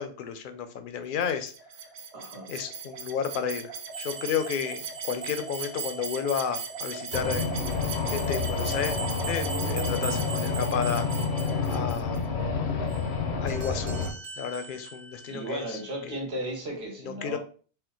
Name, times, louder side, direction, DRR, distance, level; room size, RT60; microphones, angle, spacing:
voice 1, 0.0-1.5 2.5-3.7 4.0-7.4 8.1-8.9 9.3-11.1 11.7-12.2 13.4-13.9 14.4-15.6 16.1-16.2 17.0-17.4, left 7 dB, 60° left, 9 dB, 0.7 m, -32 dB
sound 1, 1.2-12.2, right 6 dB, 90° right, 0.9 m, -39 dB
voice 2, 2.1-2.5 15.3-17.4, right 1 dB, 75° right, 0 dB, 1.4 m, -35 dB
sound 2, 3.9-12.1 12.9-16.2, right 4 dB, 40° right, 0.8 m, -41 dB
sound 3, 7.1-14.1, left 4 dB, 80° left, 1.0 m, -29 dB
4.5 x 2.1 x 3.7 m, 0.40 s
omnidirectional pair, 1.1 m